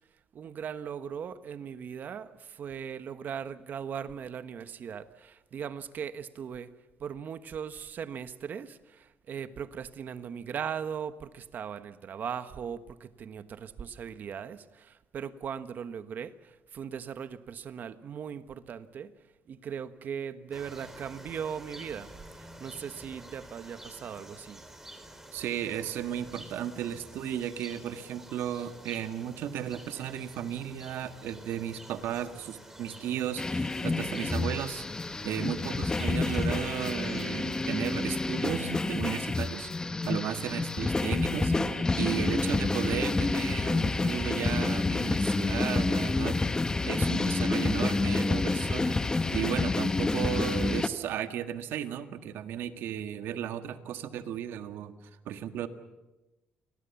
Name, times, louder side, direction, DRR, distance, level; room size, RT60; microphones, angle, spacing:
voice 1, 0.3-6.7 7.0-24.6, right 7 dB, 55° right, 1.3 m, -39 dB
sound 1, 20.5-38.8, right 1 dB, 10° right, 3.7 m, -50 dB
voice 2, 25.3-34.9 35.2-46.4 46.8-54.9 55.2-55.7, right 10 dB, 75° right, 1.7 m, -35 dB
sound 2, 33.4-50.9, left 3 dB, 20° left, 1.2 m, -28 dB
28.5 x 20.5 x 7.2 m
cardioid pair, 95°, 4 cm